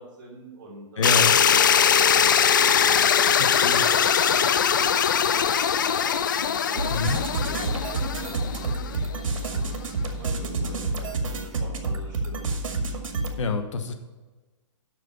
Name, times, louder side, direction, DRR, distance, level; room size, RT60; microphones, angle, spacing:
voice 1, 0.0-1.1 1.5-3.4 3.7-6.9 7.4-12.4, right 2 dB, 40° right, -5 dB, 3.1 m, -43 dB
voice 2, 1.0-1.3 3.4-3.8 6.9-7.2 13.4-13.9, left 4 dB, 70° left, 7 dB, 1.2 m, -27 dB
sound 1, 1.0-9.0, left 8 dB, 40° left, 0.4 m, -21 dB
sound 2, 6.8-13.4, right 3 dB, 90° right, 2.1 m, -29 dB
9.4 x 6.3 x 5.5 m, 1.2 s
hypercardioid pair, 175°, 16 cm